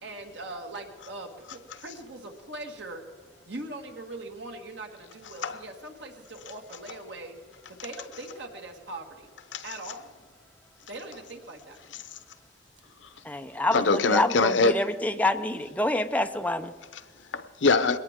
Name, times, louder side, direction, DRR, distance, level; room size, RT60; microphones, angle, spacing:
voice 1, 0.0-3.0 3.5-7.4 7.8-9.3 9.6-10.0 10.9-11.8, right 2 dB, 70° right, 2.0 m, -41 dB
voice 2, 9.5-10.0 11.9-12.2 13.0-13.2 13.7-14.9 16.9-18.0, left 3 dB, 85° left, 0.8 m, -25 dB
voice 3, 13.2-13.8 14.1-16.7, left 2 dB, 10° left, 0.7 m, -27 dB
21.5 x 18.0 x 3.7 m
head